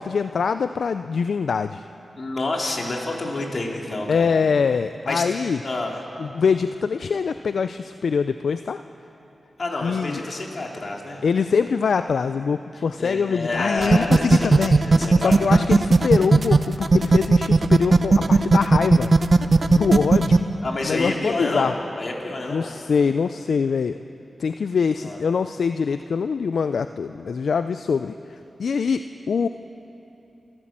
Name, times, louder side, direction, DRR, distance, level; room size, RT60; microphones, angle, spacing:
voice 1, 0.0-1.8 4.1-5.6 6.2-8.8 9.8-10.2 11.2-19.1 19.7-20.4 20.8-21.7 22.5-24.0 24.4-29.5, left 5 dB, 80° left, 10 dB, 0.4 m, -24 dB
voice 2, 2.2-4.3 5.0-5.3 5.6-6.0 9.6-11.2 12.7-14.5 14.8-15.7 20.6-21.7 22.0-22.7 25.0-25.2, left 2 dB, 55° left, 0 dB, 3.3 m, -28 dB
sound 1, 13.8-20.4, right 3 dB, 55° right, 0.8 m, -16 dB
29.0 x 12.5 x 7.5 m, 2.9 s
cardioid pair, 50°, 0 cm